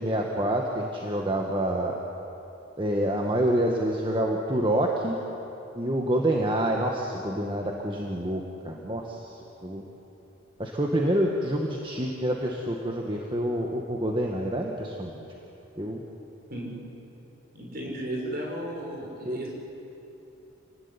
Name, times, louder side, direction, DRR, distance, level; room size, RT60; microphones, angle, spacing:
voice 1, 0.0-2.0 2.8-5.2 5.8-9.8 10.6-15.2 15.8-16.0 19.3-19.5, right 1 dB, 25° right, 0 dB, 1.7 m, -27 dB
voice 2, 17.5-19.5, right 1 dB, 45° right, -1 dB, 6.8 m, -34 dB
28.5 x 18.5 x 9.8 m, 2.9 s
head